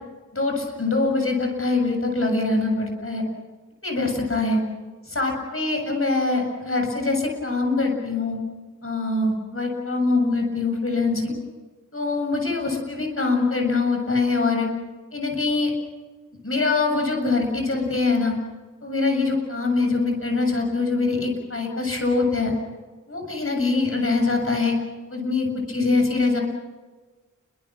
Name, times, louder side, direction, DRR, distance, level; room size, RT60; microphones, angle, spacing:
voice 1, 0.3-3.2 3.8-4.6 5.1-8.4 8.8-11.3 11.9-14.7 15.1-15.7 16.4-18.3 18.8-22.5 23.1-24.8 25.1-26.4, left 3 dB, 45° left, 2 dB, 7.5 m, -23 dB
29.0 x 24.5 x 6.2 m, 1.3 s
wide cardioid pair, 75°, 30 cm